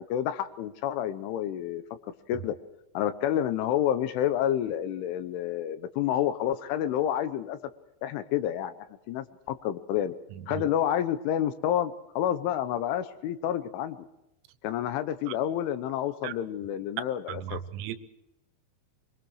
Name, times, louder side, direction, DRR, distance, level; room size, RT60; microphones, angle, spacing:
voice 1, 0.0-1.8 2.3-2.5 2.9-7.6 8.0-8.7 9.1-10.1 10.5-14.0 14.6-17.6, left 10 dB, 75° left, 3.2 m, -29 dB
voice 2, 10.3-10.7 16.2-16.3 17.3-18.0, right 11 dB, 85° right, 3.8 m, -36 dB
25.0 x 23.5 x 4.9 m
omnidirectional pair, 6.0 m